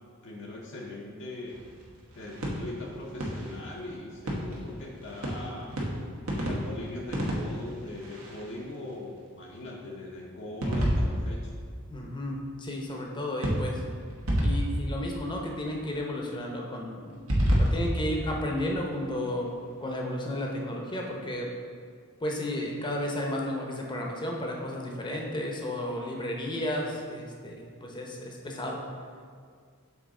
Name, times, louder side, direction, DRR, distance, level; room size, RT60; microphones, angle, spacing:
voice 1, 0.2-1.6 2.1-5.8 6.4-11.5, left 2 dB, 55° left, -3 dB, 0.8 m, -40 dB
sound 1, 1.5-8.9 10.6-12.3 13.4-15.8 17.1-19.2, equal, 75° right, 1.2 m, -31 dB
voice 2, 11.9-13.8 14.4-17.2 17.4-19.5 19.8-21.5 22.2-28.8, left 1 dB, 20° left, -1 dB, 0.8 m, -33 dB
7.3 x 3.9 x 3.7 m, 2.1 s
head